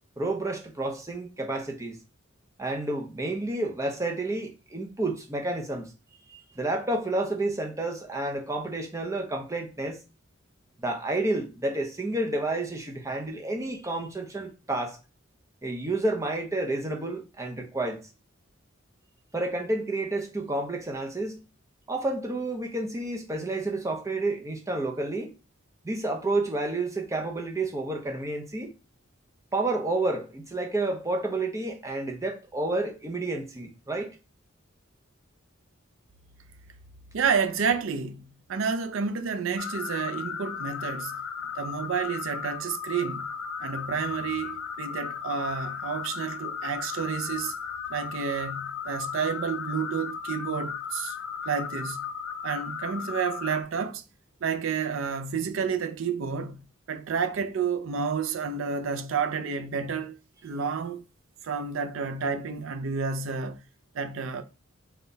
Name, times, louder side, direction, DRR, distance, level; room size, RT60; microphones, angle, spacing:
voice 1, 0.2-2.0 2.6-5.9 6.3-10.0 10.8-15.0 15.6-18.1 19.3-21.4 21.9-25.3 25.8-28.7 29.5-34.2, right 2 dB, 15° right, 0.6 m, -30 dB
voice 2, 37.1-41.2 41.6-43.3 43.6-47.5 47.9-51.2 51.5-52.1 52.4-54.0 54.4-61.0 61.4-63.6 63.9-64.4, right 6 dB, 70° right, 0.4 m, -30 dB
sound 1, 39.6-53.6, left 7 dB, 90° left, 0.6 m, -35 dB
3.8 x 2.2 x 3.9 m
head